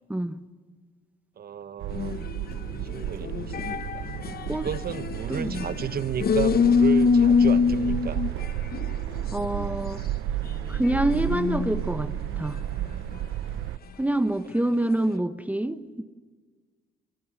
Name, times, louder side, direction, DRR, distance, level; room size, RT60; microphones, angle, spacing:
voice 1, 1.4-2.2 2.9-4.0 4.5-8.2, right 8 dB, 50° right, 14 dB, 1.0 m, -33 dB
sound 1, 1.8-13.8, right 12 dB, 90° right, 0.8 m, -32 dB
sound 2, 1.9-8.5 8.7-9.9 10.4-11.9 12.4-12.5 13.1-13.2, left 5 dB, 50° left, 1.0 m, -25 dB
voice 2, 5.3-5.7 9.3-10.0 10.7-12.1 12.4-12.6 14.0-16.0, right 1 dB, 5° right, 10 dB, 1.1 m, -26 dB
24.5 x 22.0 x 9.8 m, 1.5 s
cardioid pair, 90°, 20 cm